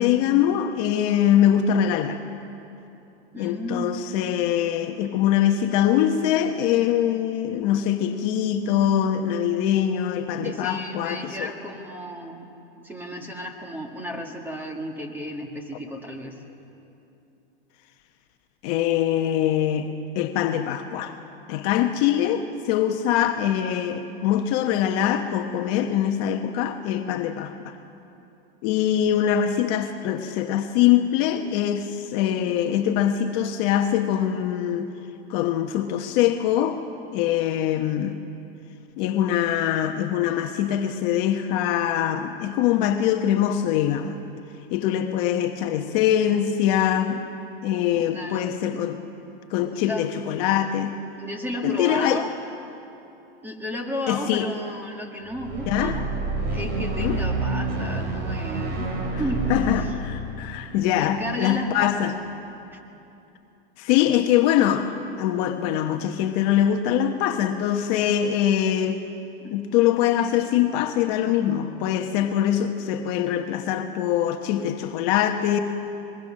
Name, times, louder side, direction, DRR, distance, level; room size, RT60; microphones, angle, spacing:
voice 1, 0.0-2.2 3.4-11.5 18.6-19.9 20.1-21.1 21.5-27.8 28.6-34.9 35.3-36.8 37.1-38.2 39.0-44.2 44.7-47.3 47.6-49.0 49.5-51.0 51.6-52.2 54.1-54.5 55.7-56.0 57.0-57.2 59.5-62.1 63.8-64.9 65.2-69.0 69.5-75.6, left 10 dB, 45° left, 5 dB, 1.0 m, -23 dB
voice 2, 3.3-4.0 10.4-12.5 12.8-16.4 47.9-48.8 49.7-50.1 51.2-52.4 53.4-56.0 56.5-58.9 59.2-60.0 60.9-62.1 62.7-62.8 69.4-69.5, equal, 5° right, 2 dB, 1.9 m, -33 dB
sound 1, 55.3-61.6, right 3 dB, 35° right, 3.5 m, -29 dB
26.5 x 21.5 x 6.4 m, 2.8 s
supercardioid pair, 150°, 30 cm